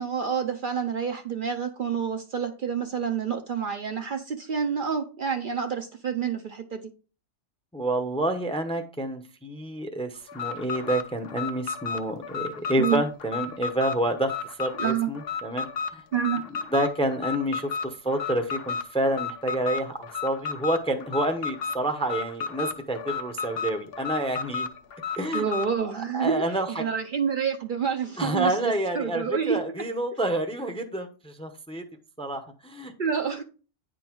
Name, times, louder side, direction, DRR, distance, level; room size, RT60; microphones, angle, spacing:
voice 1, 0.0-6.8 12.8-13.0 14.8-15.1 16.1-16.4 25.3-26.4 26.8-29.6 33.0-33.4, right 7 dB, 55° right, 0.7 m, -28 dB
voice 2, 7.7-16.0 16.7-24.7 25.2-25.4 25.9-26.9 28.2-31.8 32.2-32.9, right 1 dB, 5° left, 0.6 m, -28 dB
Alarm, 10.3-25.7, left 6 dB, 55° left, 1.0 m, -33 dB
9.5 x 3.9 x 4.5 m
omnidirectional pair, 1.2 m